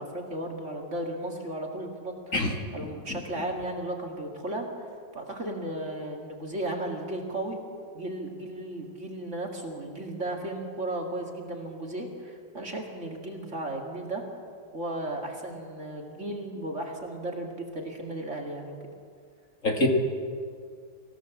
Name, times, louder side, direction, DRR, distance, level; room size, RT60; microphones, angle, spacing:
voice 1, 0.0-2.4 2.7-7.6 7.9-14.3 14.7-18.8, right 1 dB, 35° right, 1 dB, 2.4 m, -35 dB
voice 2, 2.3-3.2 19.6-19.9, left 1 dB, 40° left, 2 dB, 2.3 m, -27 dB
26.5 x 15.5 x 7.2 m, 2.3 s
omnidirectional pair, 2.2 m